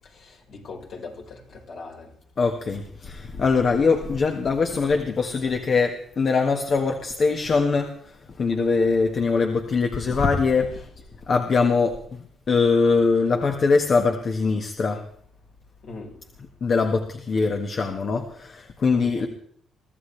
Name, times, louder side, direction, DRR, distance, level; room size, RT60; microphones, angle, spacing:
voice 1, 0.2-2.1 15.8-16.1 18.9-19.2, left 3 dB, 65° left, -1 dB, 5.3 m, -40 dB
voice 2, 2.4-10.8 11.3-15.1 16.6-19.3, left 4 dB, 50° left, 4 dB, 1.7 m, -22 dB
23.5 x 14.5 x 3.4 m, 0.63 s
cardioid pair, 90°, 0 cm